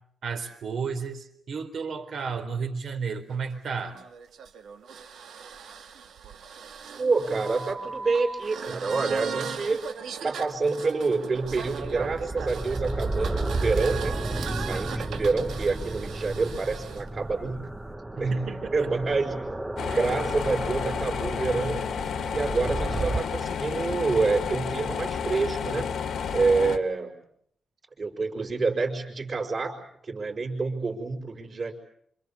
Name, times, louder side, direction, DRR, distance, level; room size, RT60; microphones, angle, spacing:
voice 1, 0.2-4.0 18.2-18.9 19.9-20.0, right 5 dB, 55° right, 7 dB, 3.9 m, -33 dB
sound 1, 3.3-17.0, right 6 dB, 85° right, 2.6 m, -38 dB
voice 2, 7.0-9.9 10.2-14.2 14.6-17.7 18.1-19.4 19.8-21.9 22.3-25.9 26.3-27.2 28.0-29.8 30.0-31.7, right 4 dB, 35° right, 0 dB, 5.0 m, -27 dB
sound 2, 11.4-23.2, right 2 dB, 10° right, 1.0 m, -33 dB
sound 3, 19.8-26.8, left 6 dB, 65° left, 1.7 m, -31 dB
28.5 x 27.0 x 7.3 m, 0.71 s
wide cardioid pair, 180°, 0 cm